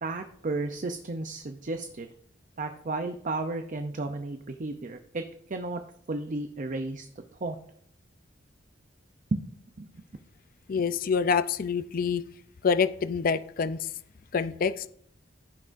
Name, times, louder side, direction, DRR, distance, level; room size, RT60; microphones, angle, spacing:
voice 1, 0.0-2.1 2.6-5.2 5.5-5.8 6.1-7.1 7.4-7.6 9.3-9.5 9.8-9.9, right 2 dB, 45° right, 6 dB, 0.6 m, -33 dB
voice 2, 10.7-12.2 12.6-13.8 14.3-14.9, left 5 dB, 50° left, 14 dB, 0.4 m, -26 dB
15.0 x 6.1 x 2.6 m, 0.64 s
head